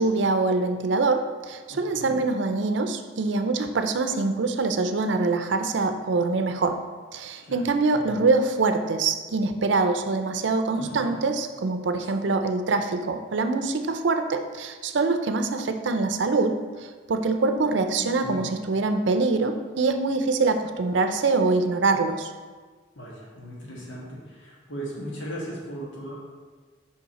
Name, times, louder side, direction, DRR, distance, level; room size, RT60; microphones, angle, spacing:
voice 1, 0.0-6.8 7.1-22.3, right 3 dB, 75° right, 8 dB, 0.5 m, -24 dB
voice 2, 1.7-2.2 7.4-7.6 7.9-8.2 10.8-11.1 18.0-18.4 22.9-26.1, equal, 85° left, -4 dB, 1.4 m, -38 dB
5.5 x 5.2 x 4.1 m, 1.5 s
head